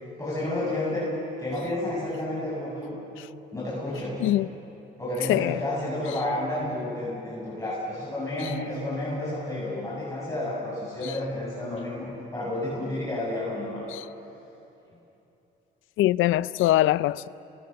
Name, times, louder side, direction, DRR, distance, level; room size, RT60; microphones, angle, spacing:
voice 1, 0.2-1.1 1.4-2.9 3.5-4.2 5.0-13.8, left 1 dB, 15° left, 7.8 m, -31 dB
voice 2, 16.0-17.3, left 15 dB, 90° left, 0.5 m, -22 dB
30.0 x 22.5 x 7.0 m
cardioid pair, 90°, 20 cm